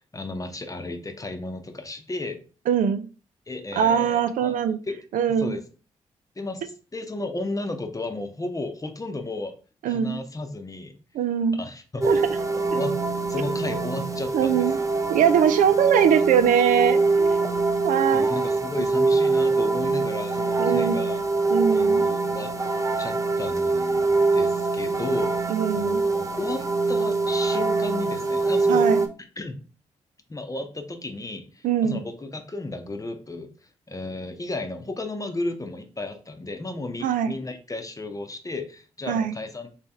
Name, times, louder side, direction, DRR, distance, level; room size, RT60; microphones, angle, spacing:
voice 1, 0.0-2.4 3.5-4.6 4.9-5.0 5.3-5.6 6.4-9.5 9.9-11.0 11.5-12.2 12.5-13.0 13.3-14.7 18.1-21.2 21.7-22.5 23.0-28.9 29.4-29.6 30.3-33.5 33.9-39.7, left 2 dB, 25° left, 6 dB, 0.8 m, -33 dB
voice 2, 2.7-3.0 3.8-4.8 5.1-5.5 9.8-10.2 11.1-11.6 12.1-12.2 14.3-14.8 15.1-18.3 20.6-21.0 21.5-22.0 25.5-26.0 28.7-29.0 31.6-32.0 37.0-37.3 39.1-39.3, right 8 dB, 70° right, 10 dB, 0.4 m, -22 dB
sound 1, 12.0-29.1, right 3 dB, 25° right, 0.6 m, -24 dB
3.2 x 2.9 x 3.5 m, 0.37 s
hypercardioid pair, 40°, 14 cm